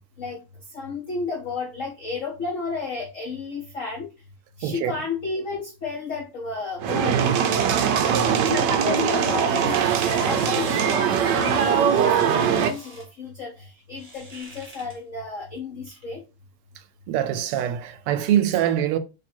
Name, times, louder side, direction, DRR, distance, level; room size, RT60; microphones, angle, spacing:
voice 1, 0.7-4.1 4.6-7.2 8.3-16.2, left 4 dB, 65° left, 0.8 m, -32 dB
sound 1, 6.8-12.7, right 8 dB, 75° right, 1.0 m, -21 dB
voice 2, 8.0-8.4 17.1-19.0, right 10 dB, 90° right, 1.5 m, -24 dB
sound 2, 8.8-13.1 13.9-15.0 15.9-16.0, right 1 dB, 35° right, 0.6 m, -39 dB
3.4 x 3.2 x 4.4 m
omnidirectional pair, 2.4 m